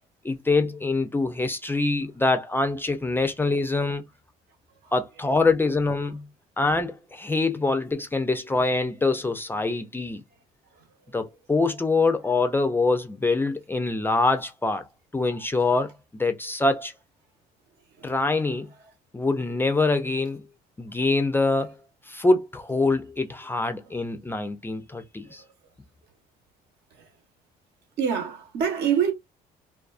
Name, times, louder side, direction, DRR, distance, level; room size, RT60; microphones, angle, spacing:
voice 1, 0.2-4.0 4.9-6.2 6.6-10.2 11.1-14.9 15.1-16.9 18.0-18.7 19.1-20.4 20.8-21.8 22.1-25.4, left 3 dB, 15° left, 0.3 m, -24 dB
voice 2, 28.0-29.1, right 8 dB, 80° right, 1.0 m, -26 dB
2.4 x 2.3 x 2.3 m
cardioid pair, 110°, 17 cm